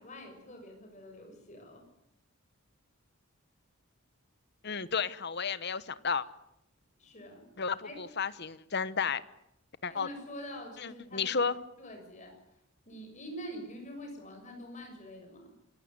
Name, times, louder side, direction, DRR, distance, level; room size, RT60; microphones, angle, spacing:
voice 1, 0.0-1.8 7.0-7.5 7.8-8.0 9.9-12.4 12.9-15.6, equal, 35° left, 4 dB, 6.9 m, -45 dB
voice 2, 4.6-6.3 7.6-9.2 9.8-10.1 10.8-11.5, left 5 dB, 50° left, 15 dB, 1.1 m, -32 dB
27.0 x 16.5 x 9.6 m, 0.82 s
head